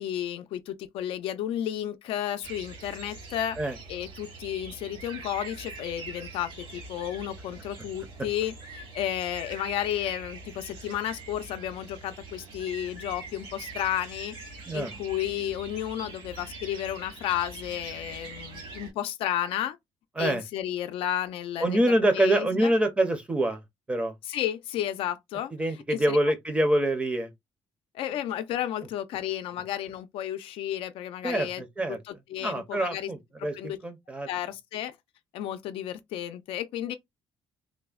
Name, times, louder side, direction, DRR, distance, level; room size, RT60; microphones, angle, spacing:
voice 1, 0.0-3.6 3.9-14.4 14.7-19.8 20.2-21.8 22.1-22.7 24.3-25.5 25.9-26.2 27.9-31.6 31.9-33.1 33.5-33.8 34.3-35.0 35.3-36.9, left 11 dB, 75° left, 0.4 m, -32 dB
sound 1, 2.4-18.9, right 3 dB, 85° right, 1.9 m, -43 dB
voice 2, 21.6-23.6 23.9-24.1 25.5-27.3 31.2-32.0 32.4-34.3, right 1 dB, 10° right, 0.5 m, -25 dB
3.3 x 2.0 x 2.3 m
cardioid pair, 175°, 9 cm